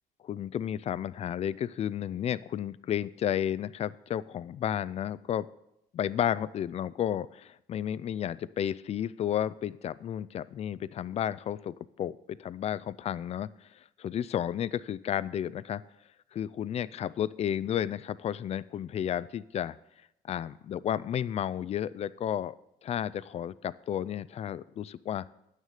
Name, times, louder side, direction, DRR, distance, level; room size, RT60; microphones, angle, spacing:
voice 1, 0.3-5.5 5.9-15.8 16.3-19.8 20.2-22.5 22.8-25.2, left 10 dB, 40° left, 17 dB, 0.4 m, -32 dB
9.1 x 6.5 x 6.5 m, 0.83 s
cardioid pair, 110°, 17 cm